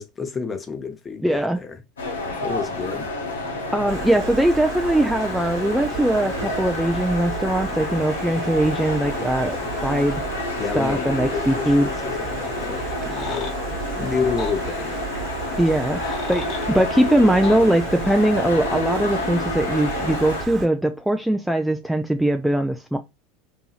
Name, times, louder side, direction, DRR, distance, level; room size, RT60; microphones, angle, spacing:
voice 1, 0.0-1.8 2.4-3.1 10.6-13.5 14.0-15.1, left 5 dB, 25° left, 0.7 m, -29 dB
voice 2, 1.2-1.6 2.3-2.4 3.7-10.2 10.7-11.9 15.6-23.0, right 1 dB, 5° right, 0.3 m, -21 dB
sound 1, 2.0-20.5, left 2 dB, 85° left, 0.9 m, -29 dB
Stream, 3.9-20.7, right 6 dB, 35° right, 1.3 m, -34 dB
sound 2, 12.9-13.6 14.4-14.6 15.7-16.7 17.4-17.6, left 5 dB, 45° left, 1.1 m, -34 dB
2.7 x 2.7 x 2.3 m
hypercardioid pair, 80°, 0 cm